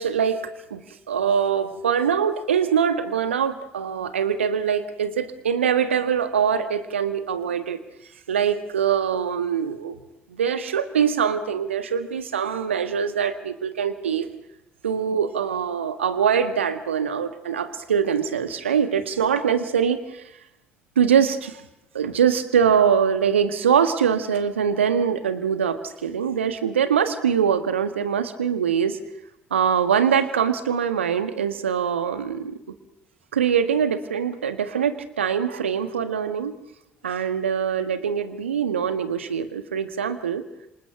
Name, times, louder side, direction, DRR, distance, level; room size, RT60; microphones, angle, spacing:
voice 1, 0.0-7.8 8.3-10.0 10.3-14.3 14.8-20.3 20.9-21.6 21.9-29.0 29.5-32.6 33.3-36.5 37.0-40.4, right 7 dB, 80° right, 11 dB, 1.6 m, -23 dB
29.0 x 27.0 x 6.0 m, 0.85 s
figure-of-eight pair, 50°, 6 cm